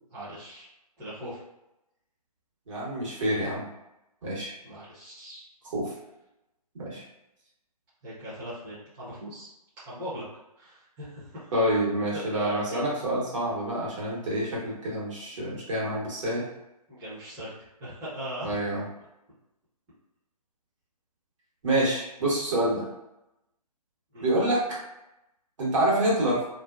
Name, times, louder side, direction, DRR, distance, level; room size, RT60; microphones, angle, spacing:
voice 1, 0.1-0.7 1.0-1.4 4.6-5.4 8.0-9.5 9.8-10.2 10.6-11.5 12.1-12.8 16.9-18.5 24.1-24.3, equal, 15° right, -12 dB, 0.7 m, -40 dB
voice 2, 2.7-3.6 4.2-4.5 5.7-5.9 6.8-7.0 11.5-16.5 18.4-18.9 21.6-22.9 24.2-24.8 25.6-26.4, right 1 dB, 50° right, -6 dB, 1.2 m, -27 dB
2.5 x 2.1 x 2.4 m, 0.90 s
figure-of-eight pair, 140°, 20 cm